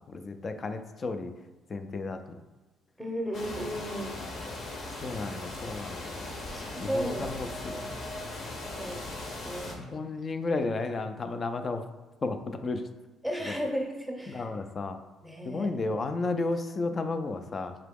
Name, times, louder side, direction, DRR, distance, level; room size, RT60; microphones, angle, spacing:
voice 1, 0.0-1.3 1.7-2.4 4.2-4.4 5.0-6.2 6.8-8.3 9.8-11.8 12.2-12.8 13.5-13.6 14.3-15.0 15.4-17.7, left 3 dB, 35° left, 8 dB, 0.3 m, -33 dB
voice 2, 3.0-4.2 6.5-7.4 7.8-7.9 8.6-9.1 9.4-10.0 13.2-14.5 15.2-15.7, equal, ahead, 1 dB, 0.7 m, -35 dB
sound 1, 3.3-9.7, left 2 dB, 55° left, 0.8 m, -39 dB
3.7 x 2.9 x 3.5 m, 1.2 s
cardioid pair, 110°, 0 cm